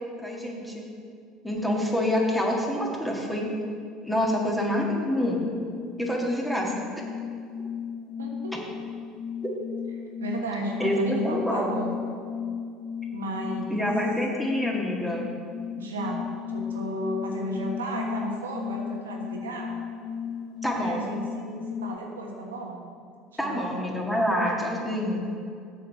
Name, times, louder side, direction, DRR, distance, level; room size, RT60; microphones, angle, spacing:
voice 1, 0.2-0.8 1.4-3.5 4.0-5.5 6.0-6.7 9.4-9.5 10.8-11.7 13.7-15.3 20.6-21.0 23.4-25.2, left 1 dB, 5° left, -2 dB, 1.9 m, -27 dB
sound 1, 5.2-22.0, left 7 dB, 40° left, 0.3 m, -35 dB
voice 2, 8.2-8.5 10.2-11.9 13.1-13.9 15.8-19.7 20.8-22.8 23.4-23.8, right 1 dB, 90° right, 0 dB, 1.3 m, -34 dB
7.7 x 5.5 x 6.8 m, 2.3 s
hypercardioid pair, 75°, 0 cm